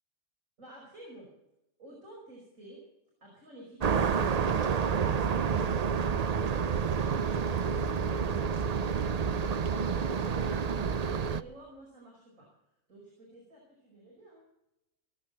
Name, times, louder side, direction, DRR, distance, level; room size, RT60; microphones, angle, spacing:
voice 1, 0.6-1.3 1.8-2.8 3.2-6.4 6.8-12.5 12.9-14.5, right 1 dB, 75° right, -4 dB, 5.7 m, -51 dB
sound 1, 3.8-11.4, right 6 dB, 50° right, 0.5 m, -29 dB
19.5 x 8.5 x 7.6 m, 0.87 s
omnidirectional pair, 1.4 m